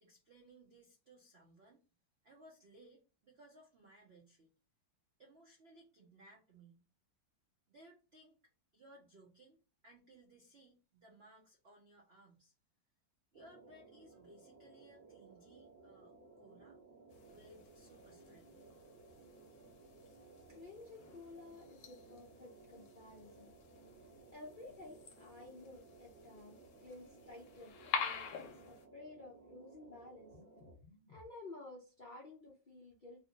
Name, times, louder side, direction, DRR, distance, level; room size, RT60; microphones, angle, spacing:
voice 1, 0.0-1.8 2.2-4.5 5.2-6.8 7.7-8.4 8.7-12.5 13.3-16.8 17.3-18.6, right 1 dB, 70° right, -1 dB, 0.6 m, -62 dB
sound 1, 13.3-30.7, right 3 dB, 25° right, 1.0 m, -60 dB
sound 2, 17.1-28.9, left 6 dB, 75° left, 1.3 m, -48 dB
voice 2, 20.5-23.6 24.3-33.2, left 2 dB, 50° left, -4 dB, 0.6 m, -54 dB
3.1 x 2.5 x 2.9 m, 0.33 s
omnidirectional pair, 2.0 m